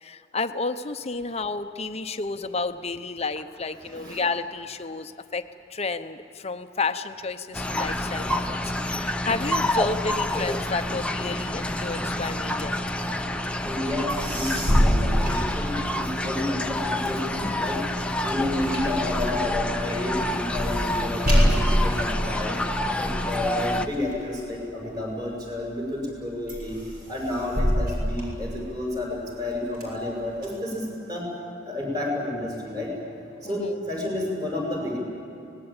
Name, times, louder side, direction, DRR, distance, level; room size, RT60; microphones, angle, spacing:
voice 1, 0.0-12.8 18.2-18.5 33.4-33.8, left 3 dB, 35° left, 10 dB, 0.9 m, -31 dB
voice 2, 3.8-4.2 13.6-17.8 18.2-22.6 23.0-26.8 27.1-31.3 31.7-32.9 33.4-35.0, left 1 dB, 25° right, -1 dB, 7.3 m, -30 dB
sound 1, 7.5-23.9, left 1 dB, 5° left, 0.9 m, -28 dB
sound 2, 13.8-13.9 14.1-16.2 16.6-25.3 25.8-26.2 26.5-29.0 29.4-30.5, equal, 55° right, 7.0 m, -27 dB
25.0 x 20.0 x 8.9 m, 2.7 s
head